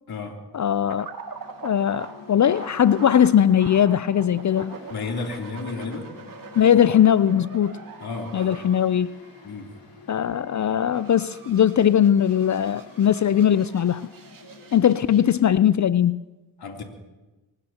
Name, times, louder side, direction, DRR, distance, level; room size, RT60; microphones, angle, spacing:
voice 1, 0.5-1.1 1.6-4.8 6.5-7.7 8.3-9.1 10.1-14.0 14.7-16.2, left 9 dB, 40° left, 0.6 m, -19 dB
sound 1, 0.9-15.4, right 5 dB, 50° right, 2.4 m, -44 dB
Mechanical fan, 1.1-15.9, left 5 dB, 75° left, 4.4 m, -48 dB
voice 2, 4.9-6.1 8.0-8.5 9.4-9.7 16.6-16.8, left 4 dB, 55° left, 3.4 m, -32 dB
24.5 x 18.5 x 3.0 m
supercardioid pair, 50°, 43 cm